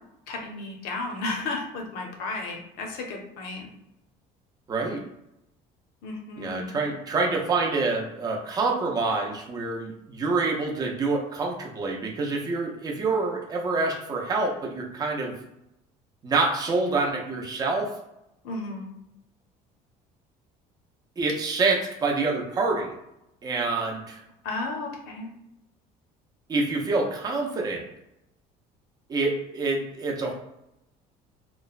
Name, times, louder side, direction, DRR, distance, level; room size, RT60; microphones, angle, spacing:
voice 1, 0.3-3.7 6.0-6.7 18.4-18.9 24.4-25.3, left 3 dB, 75° left, 2 dB, 0.6 m, -33 dB
voice 2, 4.7-5.1 6.4-15.4 16.2-17.9 21.2-22.9 23.4-24.2 26.5-27.8 29.1-30.3, right 3 dB, 25° right, 0 dB, 0.5 m, -26 dB
2.9 x 2.1 x 2.4 m, 0.85 s
cardioid pair, 150°, 16 cm